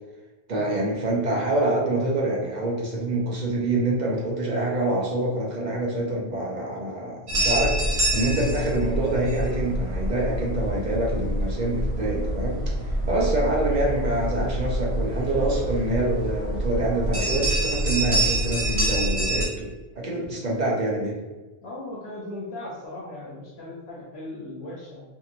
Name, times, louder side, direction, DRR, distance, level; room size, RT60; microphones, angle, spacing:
voice 1, 0.5-12.6 12.9-21.2, right 1 dB, 50° right, -3 dB, 0.7 m, -26 dB
sound 1, 7.3-19.5, right 1 dB, 80° right, 1.1 m, -26 dB
voice 2, 21.6-25.0, left 1 dB, 85° left, -5 dB, 0.9 m, -38 dB
2.8 x 2.7 x 2.5 m, 1.2 s
omnidirectional pair, 1.0 m